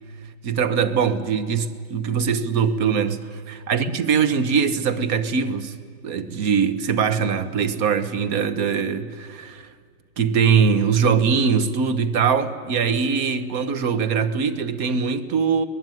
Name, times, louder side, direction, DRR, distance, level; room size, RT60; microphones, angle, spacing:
voice 1, 0.4-5.7 6.0-9.7 10.2-15.7, right 6 dB, 50° right, 13 dB, 1.5 m, -22 dB
24.0 x 20.0 x 9.2 m, 2.1 s
omnidirectional pair, 2.2 m